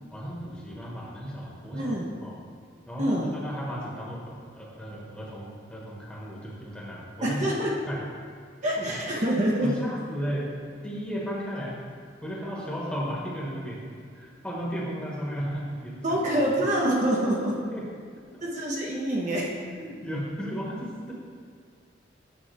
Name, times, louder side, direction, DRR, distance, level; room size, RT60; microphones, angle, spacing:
voice 1, 0.1-1.9 2.2-2.4 2.9-7.4 7.9-8.0 8.8-8.9 9.6-10.5 10.8-11.8 12.2-13.8 14.1-16.2 17.6-17.9 18.3-18.4 19.7-21.1, equal, 5° left, -5 dB, 1.3 m, -34 dB
voice 2, 1.7-2.1 3.0-3.4 7.2-7.7 8.6-9.8 16.0-17.6 18.4-19.6, right 1 dB, 35° right, -3 dB, 0.8 m, -26 dB
9.1 x 6.9 x 3.4 m, 2.1 s
head